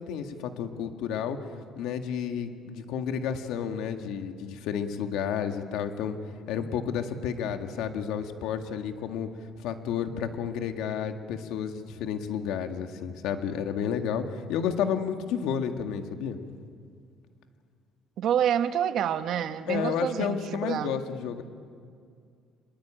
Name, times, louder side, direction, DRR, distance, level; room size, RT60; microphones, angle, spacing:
voice 1, 0.0-1.4 1.8-6.2 6.5-9.3 9.6-16.4 19.7-21.4, left 8 dB, 85° left, 1.9 m, -31 dB
voice 2, 18.2-21.0, right 9 dB, 55° right, 1.1 m, -28 dB
25.0 x 22.0 x 9.0 m
cardioid pair, 155°, 0 cm